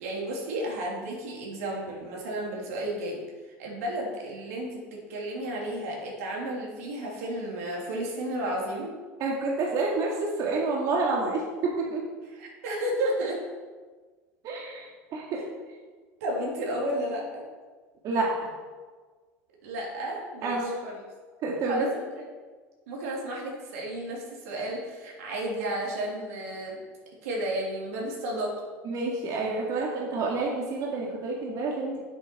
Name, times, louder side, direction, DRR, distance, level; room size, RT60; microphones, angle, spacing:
voice 1, 0.0-3.2 3.6-8.9 12.4-13.4 16.2-17.2 19.6-21.0 21.7-22.1 22.9-26.8 27.2-28.5, right 1 dB, 80° right, -2 dB, 3.0 m, -32 dB
voice 2, 9.2-12.0 14.4-15.4 18.0-18.5 20.4-20.7 21.4-21.9 28.8-32.0, right 3 dB, 55° right, -2 dB, 2.1 m, -29 dB
8.2 x 7.6 x 5.9 m, 1.4 s
hypercardioid pair, 90°, 8 cm